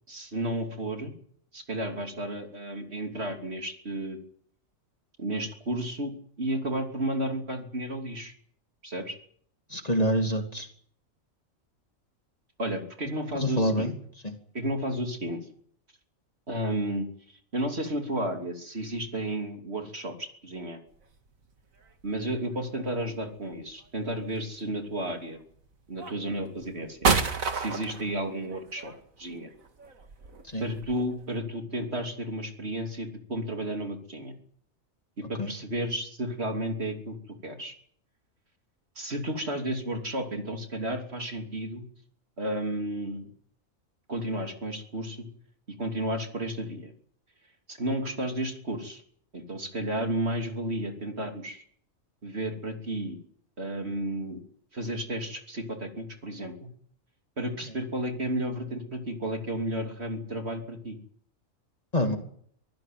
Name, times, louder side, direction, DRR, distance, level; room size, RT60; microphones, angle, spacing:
voice 1, 0.1-1.1 1.5-4.2 5.2-8.3 8.8-9.2 12.6-13.9 14.5-15.4 16.5-17.1 17.5-20.8 22.0-25.4 25.9-27.1 27.5-28.9 29.2-29.5 30.6-34.3 35.2-37.2 37.4-37.7 39.0-41.9 42.4-43.3 44.1-45.3 45.8-46.9 47.7-49.0 49.3-51.6 52.2-53.2 53.6-54.4 54.7-56.7 57.4-61.0, right 1 dB, 50° right, 5 dB, 3.2 m, -32 dB
voice 2, 9.7-10.7 13.4-13.9 30.5-30.6 35.4-35.5 61.9-62.2, equal, 30° left, 5 dB, 2.7 m, -26 dB
sound 1, 20.9-21.0 21.8-22.4 23.8-24.4 25.3-25.4 26.0-31.4, right 5 dB, 80° right, 2.3 m, -30 dB
24.5 x 15.5 x 9.4 m, 0.63 s
omnidirectional pair, 1.4 m